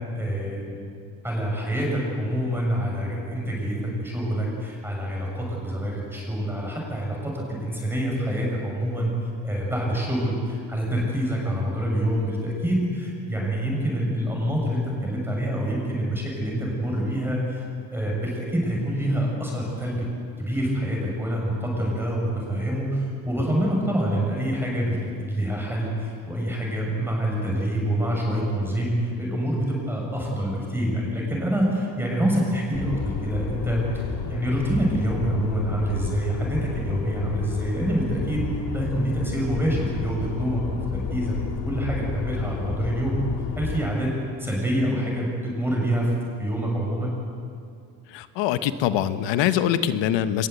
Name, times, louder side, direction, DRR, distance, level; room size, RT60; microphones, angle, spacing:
voice 1, 0.1-0.9 1.2-9.1 9.4-17.6 17.9-20.0 20.4-38.5 38.7-40.6 40.9-41.3 41.6-43.2 43.6-44.1 44.4-46.1 46.4-47.1, right 1 dB, 5° right, -2 dB, 6.4 m, -26 dB
sound 1, 32.7-43.9, left 6 dB, 55° left, 2.2 m, -31 dB
voice 2, 48.1-50.5, left 11 dB, 75° left, 11 dB, 1.3 m, -23 dB
23.5 x 20.5 x 8.2 m, 2.3 s
cardioid pair, 135°, 44 cm